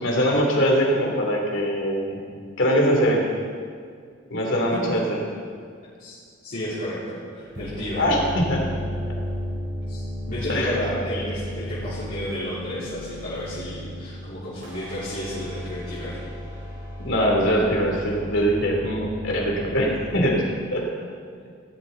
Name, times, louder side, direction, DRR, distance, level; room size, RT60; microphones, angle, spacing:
voice 1, 0.0-2.2 2.6-3.2 4.3-5.2 8.0-8.6 10.5-10.8 15.2-15.3 17.0-20.4 20.7-20.8, equal, 65° left, -1 dB, 3.1 m, -22 dB
voice 2, 6.0-8.0 9.9-16.2, equal, 45° left, -12 dB, 3.8 m, -32 dB
sound 1, 7.4-20.3, left 1 dB, 35° right, 3.9 m, -34 dB
18.0 x 13.0 x 4.0 m, 2.1 s
head